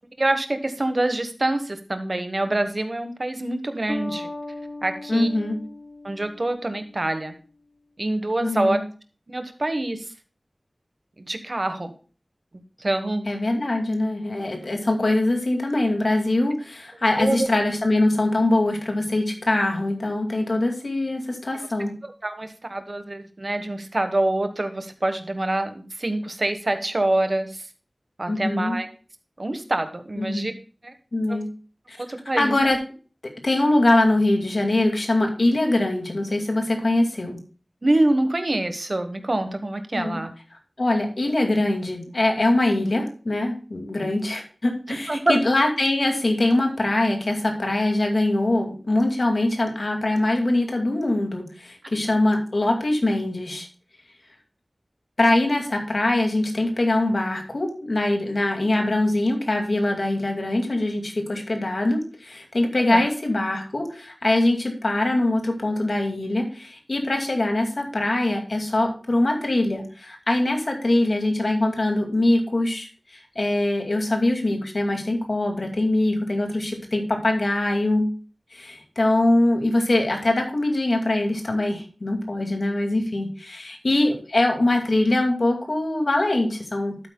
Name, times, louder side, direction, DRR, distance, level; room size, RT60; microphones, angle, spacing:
voice 1, 0.2-4.3 4.8-5.3 6.0-7.3 8.0-8.8 9.3-10.0 11.2-11.9 12.8-13.2 17.1-17.5 22.0-27.7 28.2-28.9 29.4-30.5 30.8-30.9 31.3-31.4 32.0-32.6 37.8-40.3 44.0-44.1 44.9-45.4 62.9-63.1, right 1 dB, 50° right, 8 dB, 1.3 m, -25 dB
Bass guitar, 3.9-7.4, left 2 dB, 45° left, 1.5 m, -37 dB
voice 2, 5.1-5.6 8.4-8.8 13.3-21.9 28.3-28.8 30.2-30.5 31.1-31.5 31.9-32.0 32.4-32.8 33.4-37.4 40.0-40.2 40.8-53.7 55.2-72.9 73.4-78.1 78.5-87.1, left 1 dB, 70° left, 3 dB, 2.3 m, -23 dB
12.0 x 8.4 x 2.3 m, 0.37 s
wide cardioid pair, 45°, 0 cm